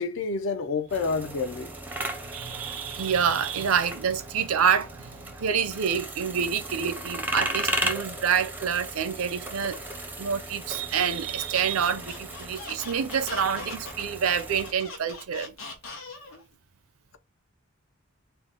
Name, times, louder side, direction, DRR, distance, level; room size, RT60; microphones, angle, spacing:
voice 1, 0.0-1.7, left 4 dB, 60° left, 0.5 m, -29 dB
sound 1, 0.9-14.7, right 1 dB, 10° right, 0.5 m, -36 dB
voice 2, 1.9-9.8 10.2-15.6, right 7 dB, 80° right, 0.5 m, -27 dB
Squeak, 11.4-16.4, left 3 dB, 80° left, 1.0 m, -41 dB
3.9 x 2.1 x 3.5 m
head